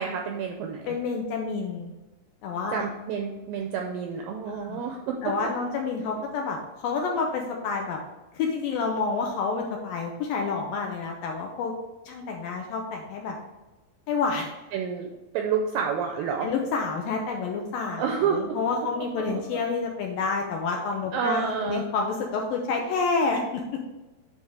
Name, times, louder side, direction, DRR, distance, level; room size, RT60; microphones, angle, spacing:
voice 1, 0.0-1.0 2.7-5.2 14.7-15.1 15.3-16.5 18.0-18.6 19.0-19.1 19.3-19.4 21.1-21.8, right 6 dB, 85° right, 2 dB, 2.0 m, -29 dB
voice 2, 0.9-1.9 2.4-2.9 4.4-4.8 5.2-8.0 8.3-11.7 12.1-13.4 14.1-14.5 16.4-23.6, left 4 dB, 80° left, 1 dB, 2.1 m, -29 dB
9.4 x 3.6 x 5.0 m, 1.1 s
omnidirectional pair, 4.7 m